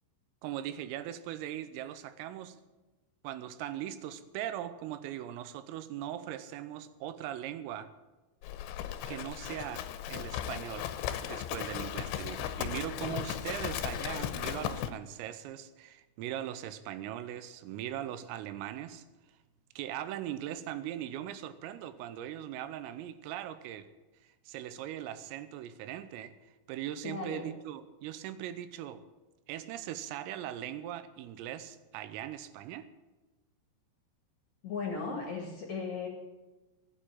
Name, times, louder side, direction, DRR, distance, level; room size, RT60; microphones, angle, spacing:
voice 1, 0.4-2.6 3.2-7.9 9.1-10.9 11.2-19.0 19.8-23.9 24.2-26.3 26.7-29.0 29.5-32.9, right 11 dB, 85° right, 12 dB, 3.5 m, -40 dB
Livestock farm animals working animals, 8.4-14.9, left 11 dB, 80° left, 2.9 m, -36 dB
voice 2, 27.0-27.5 34.6-36.1, left 4 dB, 50° left, 0 dB, 2.3 m, -36 dB
15.0 x 8.9 x 8.5 m, 1.1 s
omnidirectional pair, 5.9 m